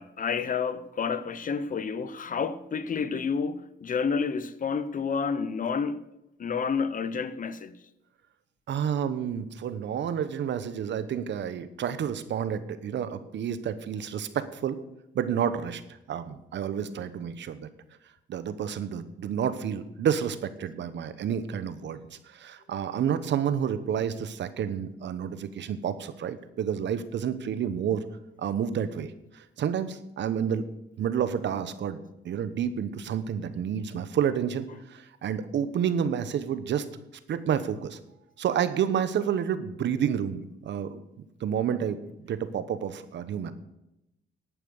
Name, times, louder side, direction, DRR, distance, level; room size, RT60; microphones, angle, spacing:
voice 1, 0.0-6.1 6.4-7.8, left 5 dB, 45° left, 0.9 m, -30 dB
voice 2, 8.7-14.8 15.1-15.8 16.1-17.7 18.3-28.0 28.4-30.7 31.0-32.0 32.2-36.9 37.3-38.0 38.4-41.0 41.4-43.5, right 8 dB, 65° right, 1.0 m, -30 dB
11.0 x 9.1 x 6.6 m
cardioid pair, 90°, 20 cm